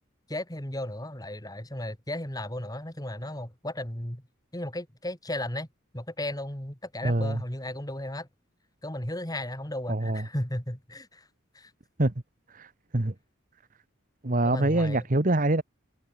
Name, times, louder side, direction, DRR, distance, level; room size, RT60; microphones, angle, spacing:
voice 1, 0.3-4.2 4.5-5.7 5.9-8.3 8.8-11.3 11.5-11.7 14.4-15.1, left 1 dB, 20° left, 2.9 m, -35 dB
voice 2, 7.0-7.4 9.9-10.2 12.0-12.1 12.5-13.1 14.2-15.6, right 2 dB, 40° right, 1.2 m, -25 dB
head